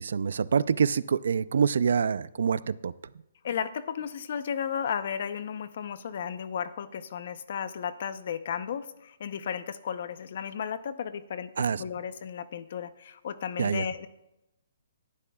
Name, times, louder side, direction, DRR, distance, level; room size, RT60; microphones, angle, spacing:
voice 1, 0.0-2.9 11.6-11.8 13.6-13.9, right 6 dB, 70° right, 17 dB, 0.5 m, -26 dB
voice 2, 3.4-11.5 11.8-14.1, left 7 dB, 50° left, 12 dB, 0.8 m, -34 dB
17.5 x 12.0 x 2.4 m, 0.90 s
hypercardioid pair, 165°, 0 cm